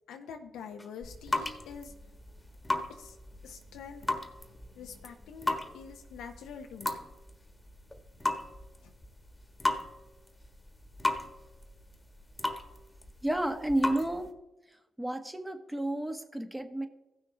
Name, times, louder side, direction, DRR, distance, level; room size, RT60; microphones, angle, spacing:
voice 1, 0.1-1.9 2.9-3.2 3.4-4.1 4.7-7.0 8.8-8.9, left 6 dB, 85° left, 4 dB, 0.7 m, -45 dB
sound 1, 0.8-14.3, left 2 dB, 15° left, 1.4 m, -36 dB
voice 2, 13.2-14.3 14.7-16.9, right 1 dB, 10° right, 7 dB, 1.2 m, -32 dB
15.5 x 6.3 x 3.3 m, 0.95 s
supercardioid pair, 60°, 0 cm